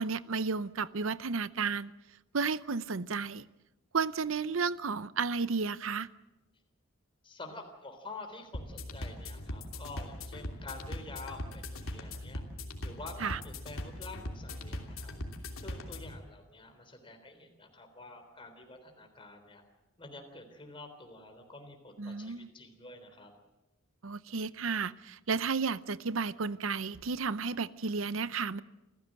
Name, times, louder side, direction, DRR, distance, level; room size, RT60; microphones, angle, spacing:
voice 1, 0.0-1.9 2.3-3.5 3.9-6.1 13.2-13.4 22.0-22.5 24.0-28.6, right 5 dB, 70° right, 0.7 m, -32 dB
voice 2, 7.2-12.5 12.8-15.2 15.6-19.6 20.0-23.3, left 2 dB, 25° left, 3.7 m, -48 dB
sound 1, 8.5-16.2, left 1 dB, 85° left, 2.9 m, -40 dB
27.5 x 15.0 x 7.7 m
head